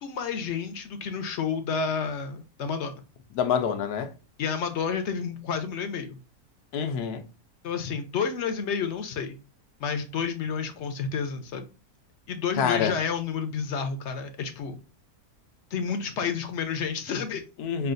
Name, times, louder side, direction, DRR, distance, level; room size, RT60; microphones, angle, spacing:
voice 1, 0.0-3.0 4.4-6.2 7.6-9.4 9.8-11.7 12.3-14.8 15.7-17.4, left 6 dB, 60° left, 0.8 m, -30 dB
voice 2, 3.3-4.1 6.7-7.3 12.6-13.0 17.6-17.9, left 7 dB, 85° left, 1.2 m, -26 dB
5.5 x 2.4 x 2.5 m
omnidirectional pair, 1.6 m